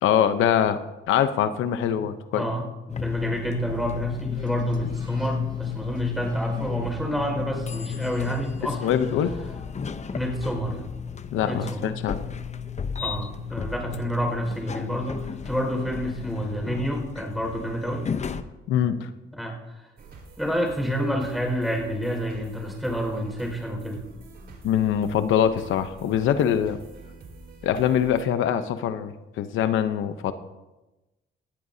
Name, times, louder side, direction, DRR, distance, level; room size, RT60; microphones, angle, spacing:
voice 1, 0.0-0.8 1.1-2.4 8.8-9.3 11.3-12.2 18.7-19.1 24.6-26.8 27.6-30.3, left 9 dB, 85° left, 10 dB, 0.8 m, -23 dB
voice 2, 1.9-8.9 10.0-10.8 11.4-11.9 13.0-18.1 19.4-19.9 20.4-24.0, equal, ahead, 1 dB, 5.1 m, -29 dB
sound 1, 2.9-18.4, left 7 dB, 35° left, 0.8 m, -33 dB
sound 2, 3.6-9.6, right 2 dB, 20° right, 1.7 m, -45 dB
sound 3, 20.0-28.2, right 3 dB, 55° right, 4.3 m, -46 dB
19.5 x 14.0 x 2.8 m, 1.1 s
cardioid pair, 90°, 20 cm